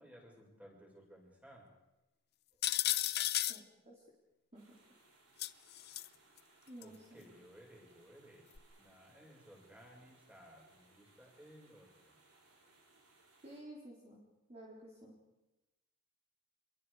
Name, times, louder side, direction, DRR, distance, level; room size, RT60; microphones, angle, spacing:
voice 1, 0.0-1.7 6.8-8.5 8.8-12.2, equal, 5° right, -1 dB, 6.3 m, -58 dB
sound 1, 2.6-3.6 5.4-6.1 6.8-6.9 8.6-8.7, left 14 dB, 45° left, 0.7 m, -33 dB
voice 2, 3.5-4.0 4.5-4.6 6.7-7.3 13.4-14.2 14.5-15.1, right 1 dB, 30° right, -3 dB, 3.9 m, -53 dB
sound 2, 4.5-13.6, right 3 dB, 90° right, 7.9 m, -67 dB
26.5 x 22.5 x 5.0 m, 0.96 s
head